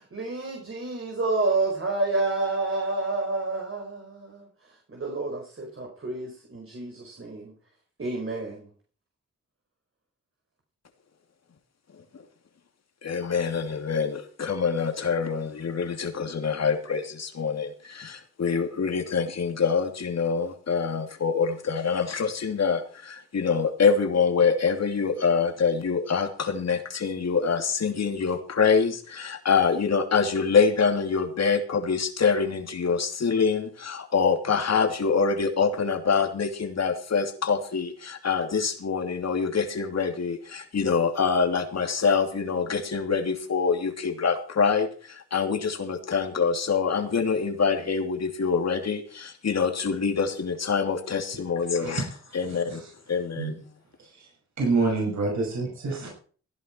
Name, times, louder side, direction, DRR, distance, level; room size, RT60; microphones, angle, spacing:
voice 1, 0.0-4.5 4.9-7.5 8.0-8.7, right 3 dB, 45° right, 4.8 m, -29 dB
voice 2, 13.0-52.0 52.3-52.8 53.1-53.6, left 5 dB, 60° left, 2.9 m, -25 dB
voice 3, 52.5-52.9 53.4-53.5 54.0-54.3 54.6-56.1, right 3 dB, 70° right, 6.6 m, -27 dB
16.5 x 11.0 x 4.6 m
cardioid pair, 50°, 29 cm